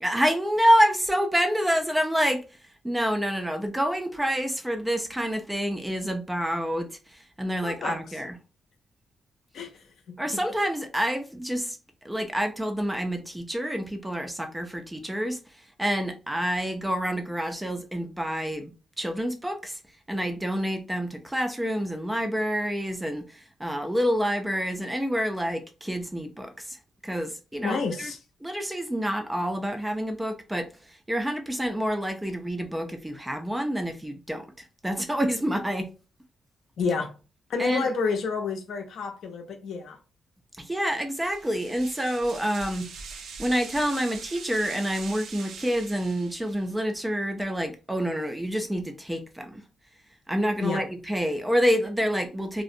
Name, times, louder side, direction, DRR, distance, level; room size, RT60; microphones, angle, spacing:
voice 1, 0.0-2.6 2.8-8.4 10.2-11.8 12.0-19.8 20.1-28.1 28.4-35.9 37.6-37.9 40.6-49.6 50.3-52.6, equal, 5° right, 0.3 m, -28 dB
voice 2, 7.6-8.0 9.5-10.4 27.6-28.2 36.8-37.1 37.5-40.0 50.6-50.8, left 4 dB, 70° left, 0.5 m, -30 dB
sound 1, 41.1-46.7, right 5 dB, 80° right, 0.4 m, -42 dB
2.5 x 2.0 x 2.5 m
cardioid pair, 145°, 0 cm